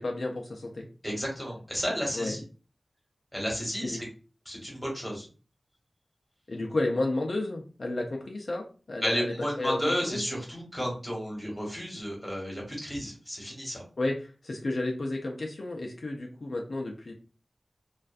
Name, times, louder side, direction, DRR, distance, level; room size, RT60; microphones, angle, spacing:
voice 1, 0.0-0.9 2.1-2.3 3.8-4.0 6.5-10.2 14.0-17.1, left 2 dB, 65° left, 1 dB, 0.4 m, -32 dB
voice 2, 1.0-2.4 3.3-4.0 4.4-5.2 9.0-13.8, equal, 5° left, -2 dB, 1.1 m, -32 dB
2.4 x 2.2 x 2.4 m, 0.36 s
wide cardioid pair, 75°, 0 cm